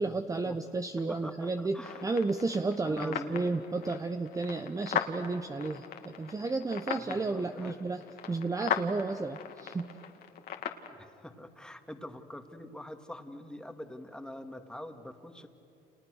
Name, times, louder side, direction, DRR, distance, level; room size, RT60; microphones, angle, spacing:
voice 1, 0.0-9.9, right 3 dB, 20° right, 7 dB, 1.0 m, -32 dB
voice 2, 1.1-2.0 2.8-3.4 6.9-7.8 11.0-15.5, left 1 dB, 5° left, 6 dB, 2.2 m, -44 dB
sound 1, 1.8-10.9, left 9 dB, 65° left, 2.3 m, -39 dB
30.0 x 30.0 x 6.5 m, 3.0 s
cardioid pair, 110°, 17 cm